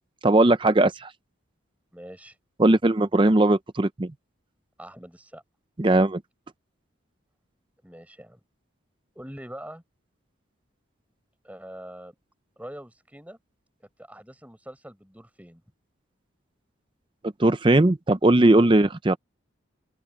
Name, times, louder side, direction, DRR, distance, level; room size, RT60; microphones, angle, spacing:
voice 1, 0.2-1.1 2.6-4.1 5.8-6.2 17.4-19.2, right 2 dB, 25° right, 0.6 m, -19 dB
voice 2, 1.9-2.3 4.8-5.4 7.8-8.4 9.1-9.8 11.4-12.1 12.6-13.4 14.0-15.6, equal, 5° right, 4.7 m, -43 dB
open air
head